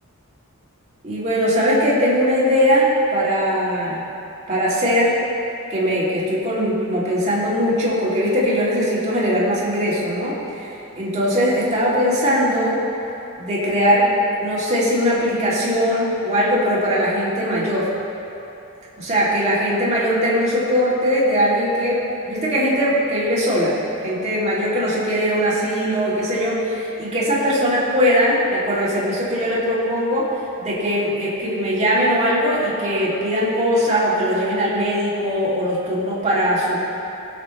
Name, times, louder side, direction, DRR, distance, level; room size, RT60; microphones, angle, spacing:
voice 1, 1.0-4.0 4.5-5.2 5.7-12.8 13.4-14.1 14.4-17.9 19.0-23.8 24.0-30.3 30.6-36.8, equal, 30° right, -8 dB, 2.6 m, -20 dB
17.0 x 7.5 x 3.2 m, 2.8 s
head